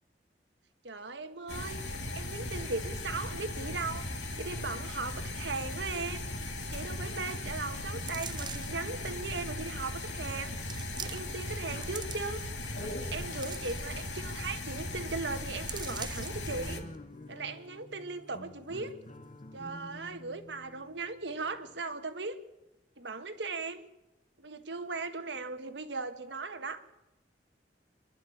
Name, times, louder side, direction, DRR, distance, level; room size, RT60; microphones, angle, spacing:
voice 1, 0.8-1.8 2.1-6.2 6.7-10.5 10.9-12.4 12.8-16.8 17.3-18.9 19.5-22.4 23.0-23.8 24.4-27.0, right 3 dB, 80° right, 9 dB, 1.6 m, -38 dB
sound 1, 1.5-16.8, left 2 dB, 85° left, 2.6 m, -38 dB
sound 2, 8.0-8.8 9.6-9.7 10.6-11.4 11.7-12.5 13.0-14.2 14.5-14.6 14.9-15.1 15.7-16.5 16.9-17.0, right 8 dB, 25° right, 0.6 m, -43 dB
Rock Anthem Intro, 16.5-21.8, left 1 dB, 40° left, 1.3 m, -49 dB
26.0 x 12.0 x 8.6 m, 0.99 s
head